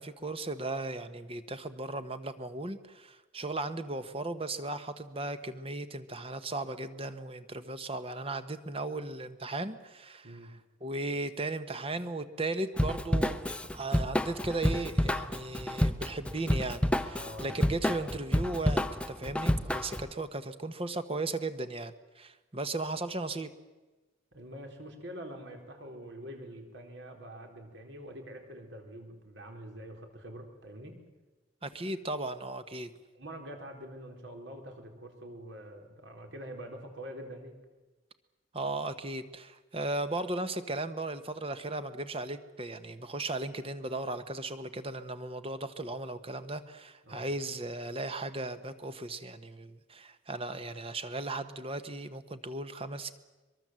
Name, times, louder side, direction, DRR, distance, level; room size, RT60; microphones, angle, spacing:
voice 1, 0.0-10.4 10.8-23.5 31.6-32.9 38.5-53.1, right 2 dB, 30° right, 10 dB, 1.1 m, -36 dB
Drum kit / Drum, 12.8-20.1, equal, 5° left, 0.7 m, -29 dB
voice 2, 17.1-17.6 24.3-31.0 33.1-37.6 47.0-47.3, equal, 65° right, 4 dB, 4.3 m, -45 dB
23.0 x 22.5 x 7.7 m, 1.2 s
head